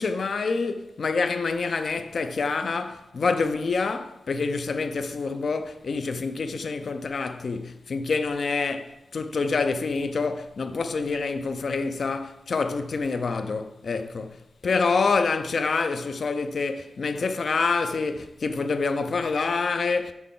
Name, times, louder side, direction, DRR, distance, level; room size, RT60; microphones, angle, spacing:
voice 1, 0.0-20.1, left 4 dB, 55° left, 0.5 m, -27 dB
6.6 x 6.1 x 3.7 m
wide cardioid pair, 115°, 0 cm